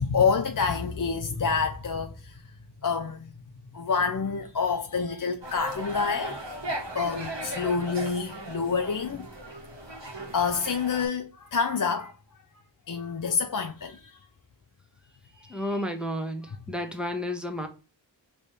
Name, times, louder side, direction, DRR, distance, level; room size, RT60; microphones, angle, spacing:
voice 1, 0.0-2.3 2.8-3.2 3.7-6.5 6.9-9.3 10.3-12.1 12.9-14.2 15.4-15.8, left 5 dB, 45° left, 0.5 m, -27 dB
sound 1, 5.4-11.1, right 1 dB, 65° right, 1.6 m, -37 dB
voice 2, 15.5-17.7, left 1 dB, ahead, 1.0 m, -31 dB
4.1 x 3.2 x 3.3 m
wide cardioid pair, 40°, 46 cm